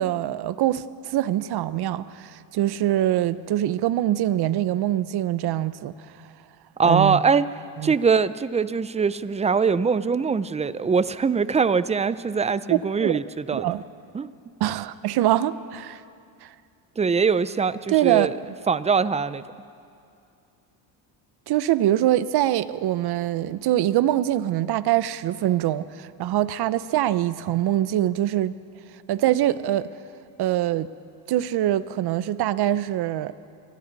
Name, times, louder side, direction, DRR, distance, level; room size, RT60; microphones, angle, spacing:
voice 1, 0.0-5.9 6.8-7.2 7.8-7.9 12.7-13.1 13.5-13.8 14.6-16.0 16.4-16.5 17.9-18.3 21.5-28.6 29.1-29.9 30.4-30.9 31.3-33.3, right 13 dB, 55° right, 0.8 m, -23 dB
voice 2, 6.8-7.5 7.8-13.7 14.1-14.3 17.0-18.3 18.7-19.4, right 5 dB, 15° right, 0.5 m, -22 dB
29.5 x 23.0 x 4.1 m
cardioid pair, 105°, 48 cm